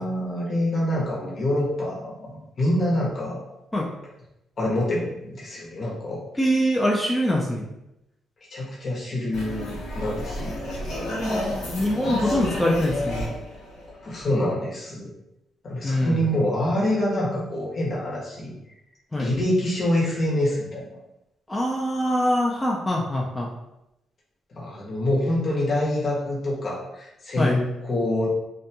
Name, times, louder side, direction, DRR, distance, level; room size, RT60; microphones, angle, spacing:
voice 1, 0.0-3.4 4.6-6.2 8.5-10.6 12.0-12.4 14.0-15.1 15.6-18.5 19.2-21.0 24.5-28.3, left 1 dB, 45° left, -5 dB, 0.9 m, -26 dB
voice 2, 6.4-7.7 11.3-13.3 15.8-16.3 19.1-19.3 21.5-23.5 27.4-27.6, equal, 15° left, -2 dB, 0.4 m, -24 dB
sound 1, 9.3-14.5, left 1 dB, 90° left, 0.8 m, -31 dB
2.5 x 2.2 x 2.8 m, 0.88 s
cardioid pair, 90°, 0 cm